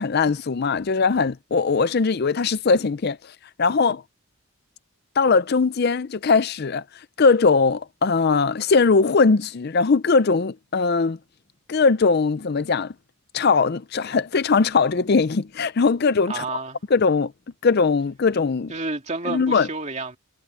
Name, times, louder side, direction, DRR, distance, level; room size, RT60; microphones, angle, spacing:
voice 1, 0.0-4.0 5.2-11.2 11.7-12.9 13.3-16.4 16.9-17.3 17.6-18.7 19.2-19.7, left 4 dB, 45° left, 0.5 m, -20 dB
voice 2, 16.3-16.8 18.7-20.2, right 3 dB, 30° right, 2.6 m, -30 dB
head